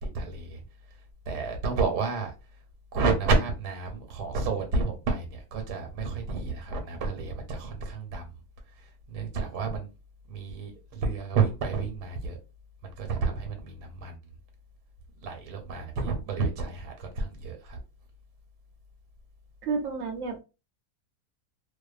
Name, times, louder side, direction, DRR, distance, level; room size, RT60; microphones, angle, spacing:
voice 1, 0.0-2.6 2.9-8.3 8.7-9.9 10.3-12.4 12.8-14.2 15.2-17.8, right 4 dB, 85° right, 1.2 m, -30 dB
voice 2, 19.6-20.5, right 4 dB, 70° right, 0.8 m, -31 dB
2.6 x 2.2 x 2.3 m
omnidirectional pair, 1.7 m